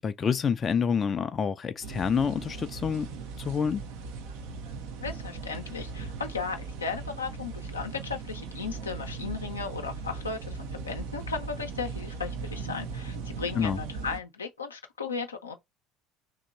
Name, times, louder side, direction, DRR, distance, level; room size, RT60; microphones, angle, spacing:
voice 1, 0.0-3.1 3.4-3.8 13.6-13.8, left 6 dB, 35° left, 0.4 m, -27 dB
sound 1, 1.8-14.2, right 4 dB, 65° right, 0.6 m, -38 dB
voice 2, 5.0-15.5, left 5 dB, 90° left, 0.6 m, -36 dB
2.9 x 2.7 x 3.9 m
hypercardioid pair, 65°, 0 cm